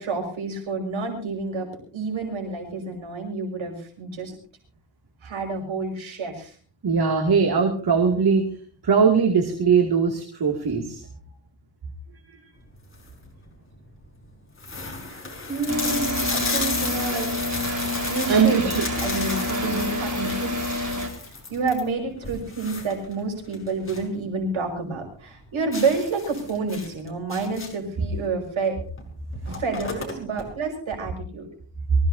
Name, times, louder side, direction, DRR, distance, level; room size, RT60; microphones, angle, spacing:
voice 1, 0.0-4.4 5.2-6.6 15.0-17.3 18.1-18.7 19.0-20.7 21.5-28.8 29.5-31.5, right 4 dB, 85° right, 2 dB, 5.9 m, -29 dB
voice 2, 6.8-8.5 8.8-11.0 18.3-18.9 29.5-29.6, right 5 dB, 55° right, 2 dB, 2.7 m, -20 dB
sound 1, 12.7-13.2 13.9-14.0 14.2-14.3 14.6-24.1 24.5-24.6 25.0-25.1 25.7-27.9 28.9-29.0 29.3-30.4, left 3 dB, 25° left, 5.4 m, -33 dB
sound 2, 15.7-21.1, left 1 dB, 40° right, 4.9 m, -28 dB
24.5 x 17.0 x 2.8 m, 0.42 s
wide cardioid pair, 135°, 46 cm